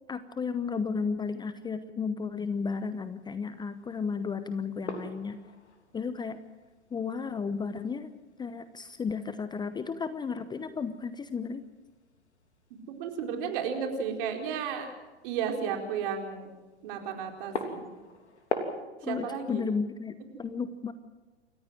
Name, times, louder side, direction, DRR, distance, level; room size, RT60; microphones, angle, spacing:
voice 1, 0.1-5.4 5.9-6.4 6.9-8.1 8.4-11.7 19.0-20.9, left 5 dB, 15° left, 12 dB, 0.9 m, -33 dB
sound 1, 2.4-18.8, left 3 dB, 80° left, 3.2 m, -44 dB
voice 2, 12.9-14.9 15.2-16.5 16.8-17.8 19.0-19.7, right 7 dB, 50° right, 3 dB, 4.5 m, -33 dB
28.5 x 15.0 x 7.7 m, 1.2 s
figure-of-eight pair, 100°, 34 cm